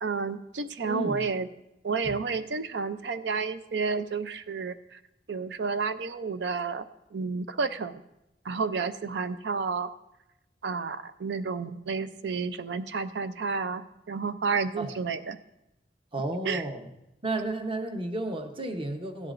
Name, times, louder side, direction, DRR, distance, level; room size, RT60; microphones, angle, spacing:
voice 1, 0.0-1.5 1.8-5.0 5.3-6.8 7.1-8.0 8.4-9.9 10.6-15.4 16.4-16.6, right 5 dB, 75° right, 11 dB, 0.5 m, -31 dB
voice 2, 0.9-1.2 2.0-2.1 14.8-14.9 16.1-16.9 17.2-19.3, right 1 dB, 30° right, 5 dB, 0.9 m, -32 dB
15.5 x 10.5 x 2.5 m, 0.88 s
head